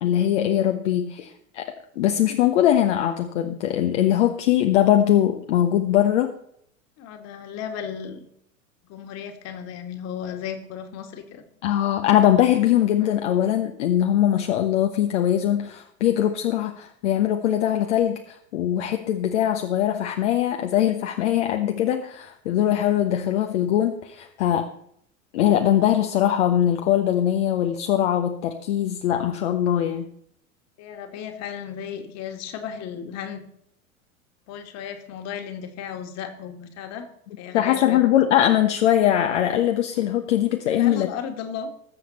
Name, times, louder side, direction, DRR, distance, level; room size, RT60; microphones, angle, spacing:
voice 1, 0.0-6.3 11.6-24.7 25.3-30.1 37.5-41.1, left 11 dB, 55° left, 5 dB, 1.2 m, -21 dB
voice 2, 7.0-8.2 8.9-11.4 30.8-33.4 34.5-37.1 37.4-38.1 40.7-41.7, left 8 dB, 40° left, 6 dB, 2.3 m, -35 dB
20.5 x 7.8 x 4.3 m, 0.70 s
figure-of-eight pair, 90°, 42 cm